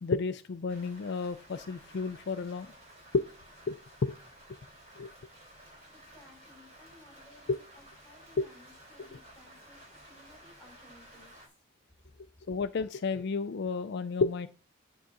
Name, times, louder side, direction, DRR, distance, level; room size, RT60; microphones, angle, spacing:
voice 1, 0.0-2.7 3.1-3.3 3.7-4.2 5.0-5.1 7.5-7.6 8.4-8.5 12.5-14.5, left 4 dB, 55° left, 10 dB, 0.4 m, -31 dB
Rain, 0.7-11.5, right 1 dB, 35° right, 3.4 m, -54 dB
voice 2, 5.9-11.6, left 2 dB, 5° left, 0 dB, 4.8 m, -59 dB
11.0 x 3.7 x 6.0 m, 0.34 s
head